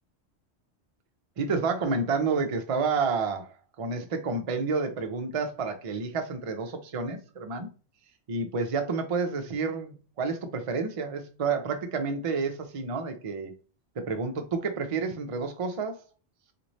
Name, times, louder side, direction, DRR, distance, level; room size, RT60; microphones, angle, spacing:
voice 1, 1.4-7.7 8.3-13.5 14.0-16.0, right 4 dB, 45° right, 0.4 m, -30 dB
3.1 x 2.5 x 4.0 m
omnidirectional pair, 1.3 m